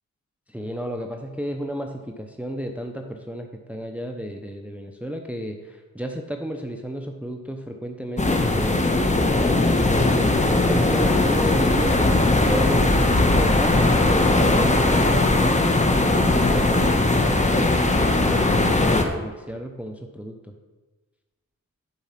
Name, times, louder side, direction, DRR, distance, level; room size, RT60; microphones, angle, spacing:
voice 1, 0.5-10.3 10.7-15.7 16.1-20.5, equal, 5° right, 4 dB, 0.7 m, -32 dB
sound 1, 8.2-19.0, left 2 dB, 20° left, 1.1 m, -19 dB
10.5 x 4.7 x 5.8 m, 1.3 s
wide cardioid pair, 80°, 33 cm